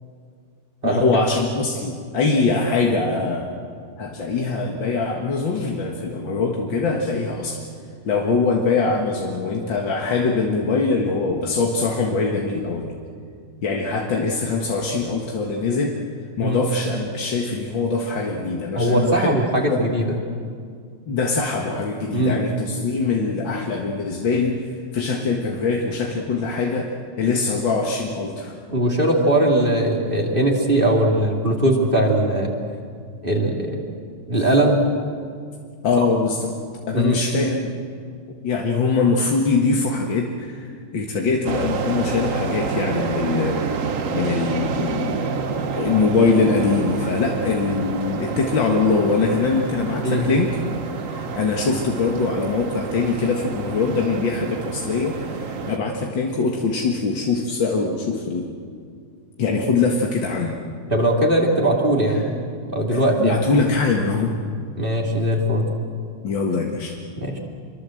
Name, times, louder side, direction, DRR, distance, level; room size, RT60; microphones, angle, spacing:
voice 1, 0.8-3.5 4.0-7.6 8.0-13.0 13.6-16.0 16.4-19.3 19.7-19.8 21.1-28.5 35.8-36.5 36.9-37.8 38.4-43.6 44.1-45.3 45.8-50.6 51.0-58.5 59.4-60.6 62.2-62.3 62.9-64.4 66.2-67.0, left 4 dB, 90° left, 0 dB, 2.5 m, -23 dB
voice 2, 18.7-20.2 22.1-22.5 28.7-32.5 33.2-33.9 34.3-34.8 36.0-36.1 36.9-37.2 50.0-50.3 60.9-63.4 64.8-65.7 67.2-67.4, right 1 dB, 30° right, 0 dB, 2.8 m, -20 dB
sound 1, 41.4-55.8, right 5 dB, 50° right, 1.4 m, -28 dB
25.5 x 23.5 x 7.8 m, 2.2 s
omnidirectional pair, 2.0 m